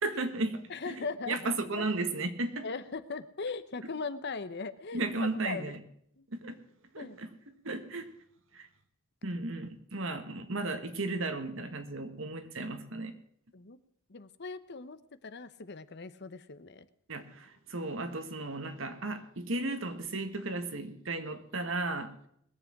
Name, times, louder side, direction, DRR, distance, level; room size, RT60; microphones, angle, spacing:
voice 1, 0.0-2.7 4.9-5.8 6.3-6.6 6.9-7.3 7.6-8.1 8.5-8.7 9.2-13.1 17.1-22.1, right 2 dB, 65° right, 8 dB, 1.7 m, -35 dB
voice 2, 0.7-1.9 2.6-5.7 6.2-6.3 7.0-7.2 13.5-13.8 14.1-16.9, left 4 dB, 50° left, 13 dB, 0.8 m, -39 dB
20.5 x 7.7 x 5.9 m, 0.68 s
head